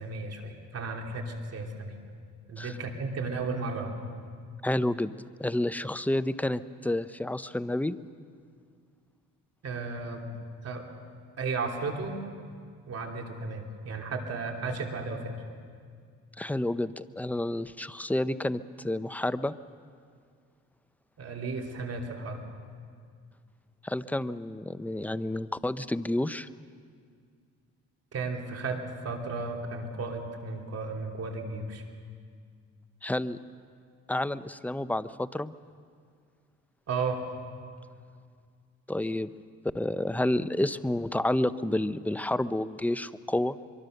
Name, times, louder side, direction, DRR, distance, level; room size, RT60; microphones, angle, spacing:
voice 1, 0.0-2.0 2.5-3.9 9.6-10.3 10.6-10.8 11.4-12.2 12.9-15.3 21.2-22.4 28.1-31.8 36.9-37.2, right 3 dB, 55° right, 2 dB, 3.2 m, -34 dB
voice 2, 4.6-5.1 5.4-8.0 16.4-19.5 23.8-26.5 33.0-33.4 34.1-35.5 38.9-39.3 39.7-43.6, left 1 dB, 5° left, 13 dB, 0.7 m, -30 dB
23.5 x 23.5 x 6.6 m, 2.1 s
cardioid pair, 90°, 30 cm